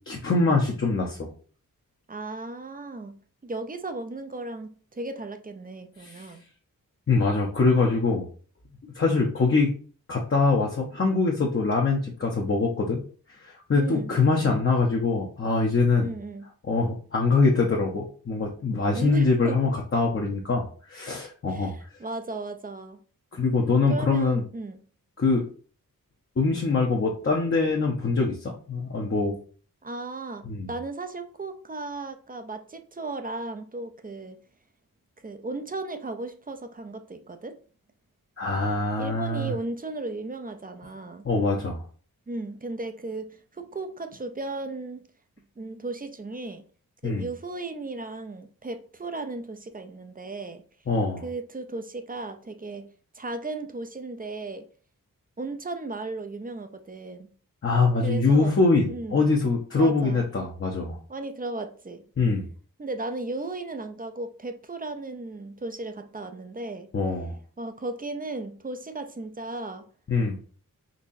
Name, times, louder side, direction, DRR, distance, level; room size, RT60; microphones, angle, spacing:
voice 1, 0.1-1.3 6.0-6.3 7.1-8.3 8.9-9.7 10.1-13.0 13.4-16.1 16.6-21.7 23.3-24.4 25.2-25.4 26.4-29.3 30.4-30.7 38.4-39.5 41.2-41.8 47.0-47.2 50.9-51.2 57.6-61.0 62.2-62.5 66.9-67.3 70.1-70.4, left 3 dB, 40° left, 0.7 m, -23 dB
voice 2, 2.1-6.4 13.8-14.1 16.0-16.4 18.9-19.6 21.5-23.0 23.9-24.8 29.8-34.4 35.2-37.6 39.0-41.3 42.3-45.1 45.6-46.6 47.0-50.6 51.2-52.9 53.1-54.7 55.4-57.3 58.0-58.6 58.9-59.2 59.8-60.2 61.1-62.0 62.8-66.9 67.6-69.9, right 2 dB, 25° right, 0.5 m, -35 dB
4.0 x 2.8 x 2.6 m
cardioid pair, 65°, 35 cm